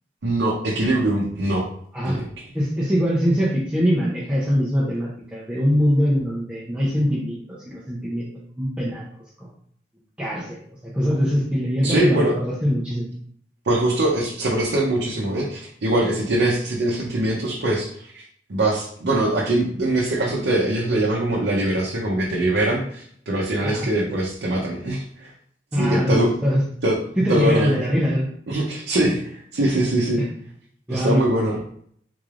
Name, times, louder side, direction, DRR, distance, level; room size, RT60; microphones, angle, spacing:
voice 1, 0.2-1.7 2.0-2.3 11.8-12.3 13.7-18.2 18.5-25.3 25.7-26.3 26.8-27.0 27.3-27.8 28.5-29.2 29.5-30.2 30.9-31.6, right 1 dB, 70° right, -3 dB, 0.6 m, -22 dB
voice 2, 2.5-7.4 7.7-8.3 8.6-9.0 9.4-9.5 10.2-10.6 10.9-13.1 23.6-23.9 25.7-26.6 27.2-28.3 30.2-30.3 30.9-31.2, equal, 5° right, -8 dB, 0.6 m, -22 dB
3.8 x 3.2 x 2.4 m, 0.63 s
head